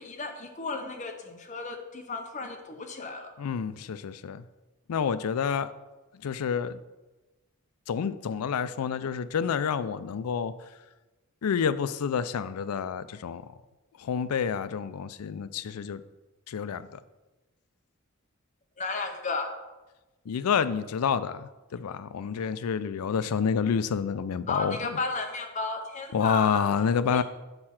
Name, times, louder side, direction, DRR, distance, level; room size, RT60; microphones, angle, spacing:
voice 1, 0.0-3.3 18.8-19.5 24.5-26.6 27.1-27.2, left 3 dB, 35° left, 4 dB, 0.7 m, -33 dB
voice 2, 3.4-4.4 4.9-5.7 6.2-6.8 7.9-10.5 11.4-13.4 14.0-16.0 16.5-17.0 20.3-25.0 26.1-27.2, left 6 dB, 85° left, 14 dB, 0.4 m, -28 dB
6.7 x 4.3 x 5.8 m, 1.1 s
head